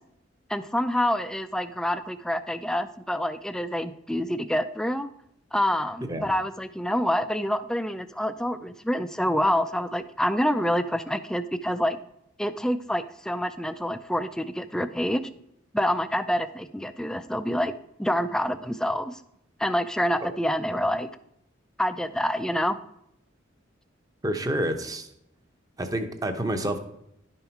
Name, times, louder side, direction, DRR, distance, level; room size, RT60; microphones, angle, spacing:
voice 1, 0.5-5.1 5.5-12.0 12.4-15.2 15.7-17.7 18.0-19.2 19.6-21.1 21.8-22.8, equal, 5° left, 11 dB, 0.4 m, -27 dB
voice 2, 24.2-25.1 25.8-26.8, right 1 dB, 20° right, 6 dB, 0.8 m, -28 dB
11.0 x 5.5 x 4.5 m, 0.77 s
head